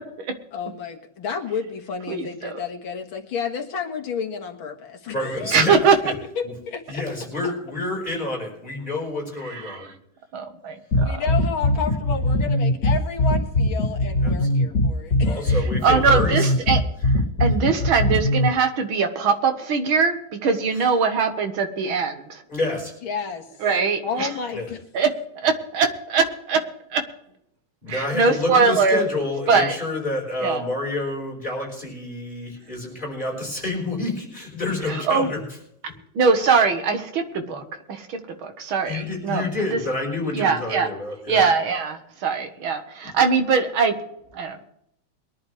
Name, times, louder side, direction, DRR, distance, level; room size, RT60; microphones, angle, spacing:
voice 1, 0.5-5.5 6.4-7.0 7.4-7.5 11.0-15.5 23.0-23.5 24.0-24.8, left 6 dB, 85° left, 3 dB, 2.5 m, -31 dB
voice 2, 2.1-2.5 5.5-6.0 9.4-10.0 10.3-11.1 15.8-17.1 17.4-22.4 23.6-24.3 24.9-25.1 25.4-26.6 26.9-27.0 27.9-29.0 29.5-29.8 30.4-30.6 34.9-35.3 36.1-37.6 37.9-39.8 40.3-40.9 41.3-44.0 44.3-44.6, right 5 dB, 85° right, 6 dB, 2.3 m, -22 dB
voice 3, 5.1-6.1 6.4-6.5 6.9-9.9 14.2-14.5 15.2-16.5 20.7-20.9 22.5-22.9 24.5-24.7 27.8-35.4 37.5-37.6 38.9-41.5, left 2 dB, 20° left, -2 dB, 5.3 m, -28 dB
sound 1, 10.9-18.5, left 1 dB, 55° left, 3.3 m, -20 dB
22.5 x 11.0 x 3.3 m, 0.75 s
omnidirectional pair, 2.2 m